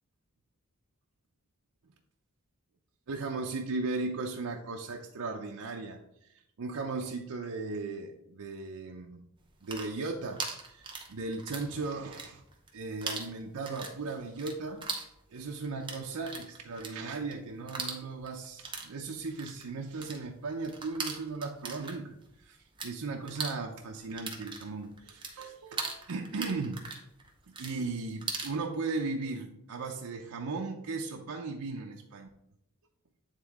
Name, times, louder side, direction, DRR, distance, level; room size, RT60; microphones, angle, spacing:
voice 1, 3.1-9.3 9.6-12.4 12.7-14.9 15.3-26.8 27.5-32.3, right 3 dB, 90° right, 1 dB, 0.6 m, -37 dB
sound 1, 9.5-11.7 12.0-12.7 13.0-22.9 23.2-28.6, right 4 dB, 20° right, 0.8 m, -40 dB
8.9 x 3.6 x 3.6 m, 0.80 s
head